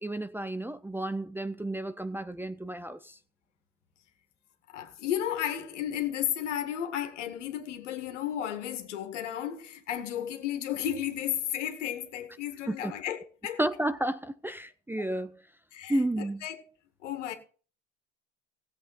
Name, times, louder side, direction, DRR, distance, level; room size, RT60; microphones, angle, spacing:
voice 1, 0.0-3.2 12.7-12.9 13.6-15.3 15.9-16.4, right 1 dB, 5° right, 0.6 m, -32 dB
voice 2, 4.7-13.6 15.7-16.6 17.0-17.3, left 10 dB, 70° left, 2.0 m, -33 dB
18.0 x 7.9 x 4.2 m
figure-of-eight pair, 65°, 37 cm